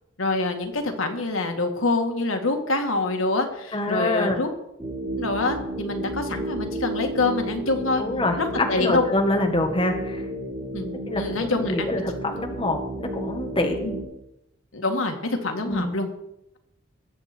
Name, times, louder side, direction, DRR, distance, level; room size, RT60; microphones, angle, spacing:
voice 1, 0.2-4.5 5.2-8.0 8.4-9.0 10.7-11.9 13.8-14.0 14.7-16.1, left 3 dB, 80° left, 4 dB, 1.9 m, -26 dB
voice 2, 3.7-4.4 8.0-10.2 11.1-13.8 15.7-15.9, left 1 dB, 25° left, 3 dB, 1.5 m, -26 dB
sound 1, 4.8-14.0, right 1 dB, 20° right, 3.9 m, -32 dB
21.0 x 8.2 x 4.4 m, 0.84 s
head